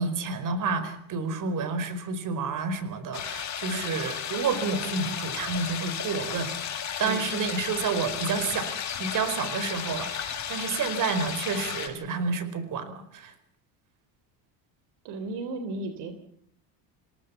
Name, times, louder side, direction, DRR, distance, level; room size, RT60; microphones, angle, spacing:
voice 1, 0.0-6.5 7.0-8.7 9.0-13.3, right 4 dB, 45° right, 11 dB, 4.8 m, -30 dB
sound 1, 3.1-11.9, left 8 dB, 40° left, 6.7 m, -34 dB
voice 2, 7.0-7.3 15.0-16.1, right 2 dB, 70° right, 9 dB, 3.6 m, -35 dB
28.5 x 18.0 x 7.1 m, 0.66 s
cardioid pair, 135°, 42 cm